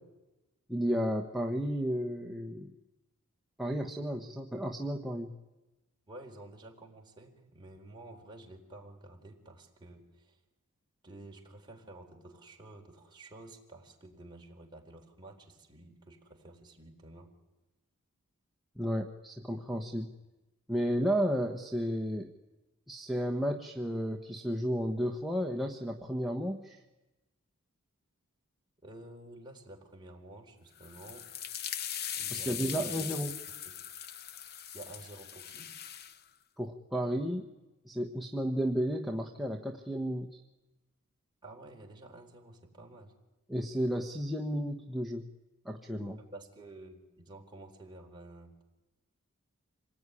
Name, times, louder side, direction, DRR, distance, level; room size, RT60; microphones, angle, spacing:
voice 1, 0.7-2.7 3.6-5.3 18.8-20.1 20.7-22.3 22.9-26.8 32.3-33.3 36.6-37.5 37.8-40.4 43.5-45.2 45.6-46.2, equal, ahead, 0 dB, 1.2 m, -33 dB
voice 2, 6.1-10.4 11.0-17.3 28.8-31.3 32.2-32.9 33.7-33.8 34.7-35.7 41.4-43.1 46.2-48.6, right 2 dB, 20° right, 0 dB, 4.1 m, -51 dB
sound 1, 30.8-36.2, left 9 dB, 50° left, 0.8 m, -40 dB
27.0 x 19.0 x 10.0 m, 1.1 s
head